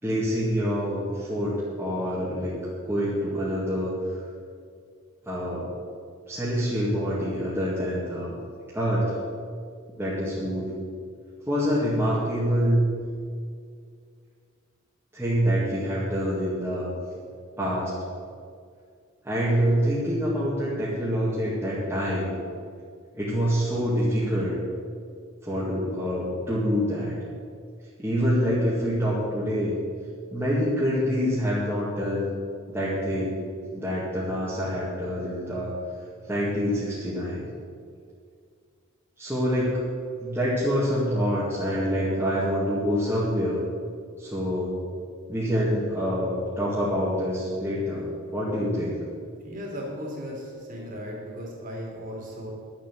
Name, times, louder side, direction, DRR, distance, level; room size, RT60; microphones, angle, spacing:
voice 1, 0.0-2.5 2.8-3.9 5.2-5.7 6.3-8.3 8.7-9.2 10.0-10.7 11.5-12.9 15.1-16.9 17.6-17.9 19.2-22.3 23.1-24.6 25.4-27.2 28.0-29.8 30.3-32.3 32.7-33.4 33.7-35.7 36.3-37.5 39.2-39.8 40.2-43.6 44.2-44.7 45.3-49.0, equal, 10° right, -10 dB, 2.2 m, -26 dB
voice 2, 49.4-52.5, equal, 40° right, -2 dB, 3.1 m, -36 dB
11.5 x 8.0 x 7.6 m, 2.2 s
head